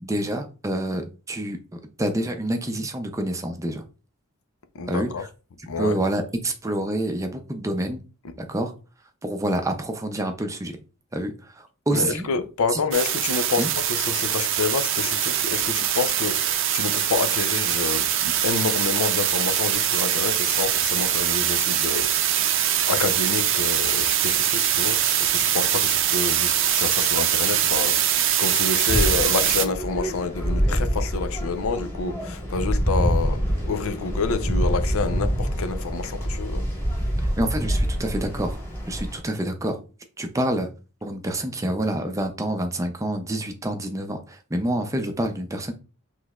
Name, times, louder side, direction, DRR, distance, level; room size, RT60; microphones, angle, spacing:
voice 1, 0.0-3.8 4.9-5.3 5.8-8.0 8.5-8.7 9.2-10.8 11.1-12.3 12.7-12.8 13.6-13.7 37.2-38.6 38.9-39.8 40.2-40.7 41.0-45.7, right 1 dB, 15° right, 0.5 m, -27 dB
voice 2, 4.7-5.2 5.7-6.0 11.9-36.6, left 5 dB, 75° left, 0.5 m, -28 dB
sound 1, 12.9-29.6, right 10 dB, 60° right, 0.5 m, -23 dB
sound 2, 28.9-39.2, equal, 10° left, 1.6 m, -26 dB
6.0 x 3.2 x 2.4 m
head